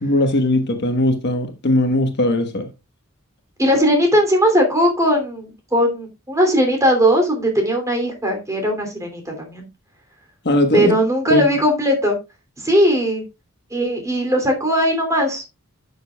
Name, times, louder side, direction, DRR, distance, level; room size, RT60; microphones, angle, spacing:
voice 1, 0.0-2.7 10.4-10.9 11.3-11.4, left 1 dB, 50° left, 6 dB, 1.3 m, -19 dB
voice 2, 3.6-9.7 10.7-12.2 12.6-13.2 13.7-15.4, equal, 15° right, 3 dB, 2.8 m, -18 dB
11.5 x 6.8 x 2.3 m, 0.25 s
head